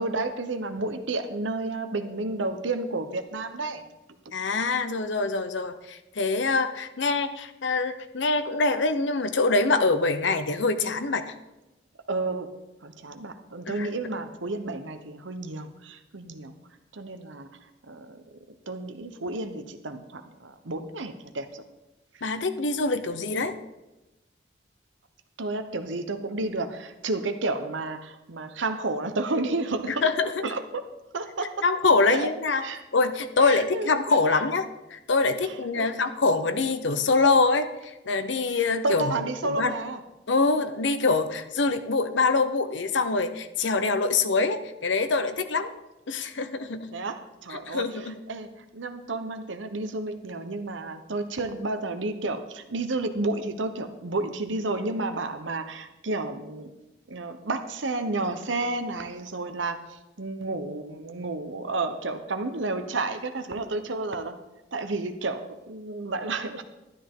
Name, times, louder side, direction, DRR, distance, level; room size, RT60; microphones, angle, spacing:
voice 1, 0.0-3.8 12.1-16.5 16.9-17.5 17.9-18.2 18.7-21.6 25.4-30.1 30.4-30.8 31.1-31.6 32.1-32.3 32.6-32.8 33.4-33.9 35.4-35.9 38.8-40.0 46.9-56.7 57.1-64.4 64.7-66.6, right 2 dB, 90° right, 9 dB, 1.0 m, -31 dB
voice 2, 4.3-11.3 13.7-13.9 22.2-23.6 30.0-30.4 31.6-32.6 32.9-39.1 39.4-39.8 40.3-45.7 46.1-46.9 47.5-48.2, left 3 dB, 80° left, 9 dB, 0.8 m, -24 dB
12.5 x 11.5 x 3.8 m, 1.0 s
head